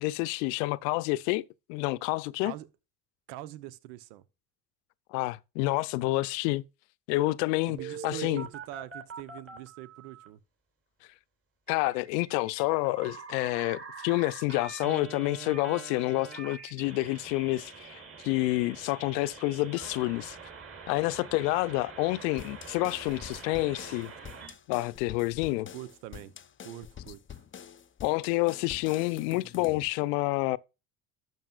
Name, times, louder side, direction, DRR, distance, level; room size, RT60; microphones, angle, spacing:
voice 1, 0.0-1.4 1.7-2.5 5.1-6.6 7.1-7.8 8.0-8.5 11.7-20.4 20.9-24.1 24.7-25.7 28.0-30.6, left 20 dB, 75° left, 0.7 m, -28 dB
voice 2, 3.3-4.2 7.7-10.4 25.4-26.3 26.6-27.4, right 14 dB, 80° right, 1.0 m, -44 dB
Telephone, 7.8-10.3 11.7-24.5, right 6 dB, 30° right, 3.9 m, -44 dB
sound 1, 22.4-29.9, left 8 dB, 25° left, 0.7 m, -47 dB
12.0 x 7.3 x 2.4 m
hypercardioid pair, 75°, 50 cm